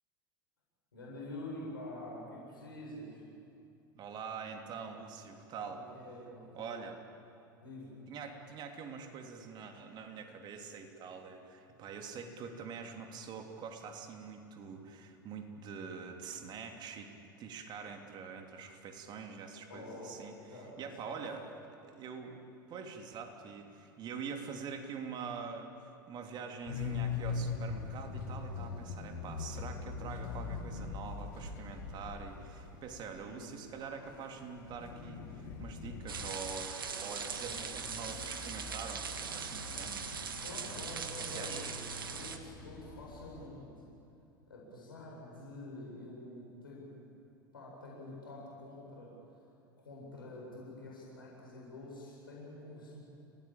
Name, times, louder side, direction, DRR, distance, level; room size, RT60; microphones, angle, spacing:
voice 1, 0.9-3.2 5.6-6.8 7.6-8.0 19.7-20.2 20.5-21.2 33.1-33.5 33.8-33.9 40.4-43.7 44.5-46.9 47.5-49.1 49.8-53.0, left 1 dB, 80° left, -4 dB, 7.9 m, -47 dB
voice 2, 3.9-5.9 6.5-7.0 8.1-17.1 17.4-20.3 20.8-21.4 21.8-22.4 22.7-25.7 26.1-40.0 41.3-41.8, right 5 dB, 40° right, 3 dB, 3.2 m, -45 dB
sound 1, 26.7-43.5, left 5 dB, 60° left, 4.7 m, -43 dB
sound 2, 36.1-42.4, right 6 dB, 75° right, 1.7 m, -41 dB
30.0 x 18.5 x 8.8 m, 2.7 s
figure-of-eight pair, 80°, 12 cm